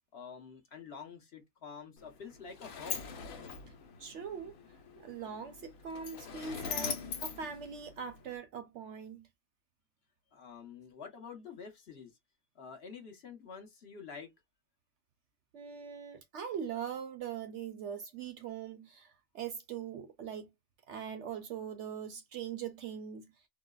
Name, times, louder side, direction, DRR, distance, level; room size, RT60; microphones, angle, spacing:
voice 1, 0.1-3.1 10.3-12.2 12.5-14.3, left 6 dB, 50° left, 1.1 m, -48 dB
Sliding door, 2.0-8.4, left 6 dB, 75° left, 1.2 m, -42 dB
voice 2, 4.0-4.5 4.9-9.3 15.5-20.5 20.9-23.3, right 7 dB, 65° right, 0.8 m, -41 dB
3.8 x 2.0 x 2.2 m
omnidirectional pair, 1.5 m